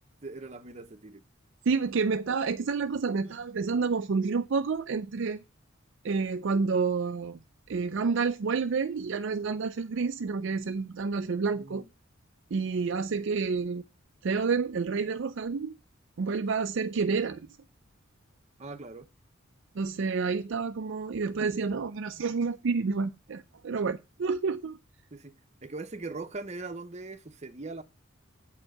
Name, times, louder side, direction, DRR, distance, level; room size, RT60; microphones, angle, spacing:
voice 1, 0.2-1.2 11.5-11.9 18.6-19.1 25.1-25.4 25.6-27.8, right 3 dB, 35° right, 0.8 m, -40 dB
voice 2, 1.7-5.4 6.0-7.4 7.7-11.8 12.5-13.8 14.2-15.7 16.2-17.5 19.8-24.8, right 4 dB, 60° right, 0.4 m, -29 dB
8.2 x 4.5 x 6.4 m
head